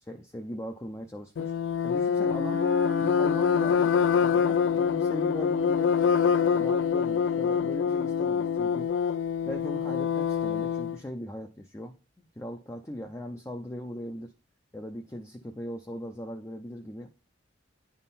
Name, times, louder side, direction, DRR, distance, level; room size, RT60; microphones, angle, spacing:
voice 1, 0.1-1.5 1.8-2.6 3.0-3.9 4.2-5.9 6.4-8.9 9.5-14.3 14.7-17.1, equal, 15° left, 4 dB, 0.5 m, -39 dB
sound 1, 1.4-11.0, left 7 dB, 70° left, 0.3 m, -25 dB
Wind instrument woodwind instrument, 2.2-8.8, left 1 dB, 60° right, 1.1 m, -38 dB
9.9 x 3.7 x 4.2 m, 0.34 s
head